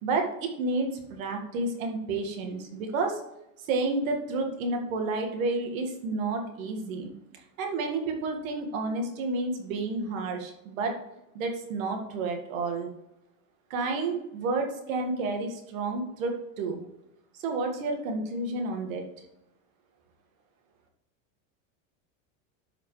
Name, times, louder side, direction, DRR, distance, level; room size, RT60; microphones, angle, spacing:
voice 1, 0.0-3.2 3.6-10.9 11.3-12.9 13.7-16.8 17.3-19.0, right 3 dB, 85° right, 3 dB, 2.0 m, -30 dB
11.5 x 5.1 x 3.3 m, 0.85 s
supercardioid pair, 140°, 40 cm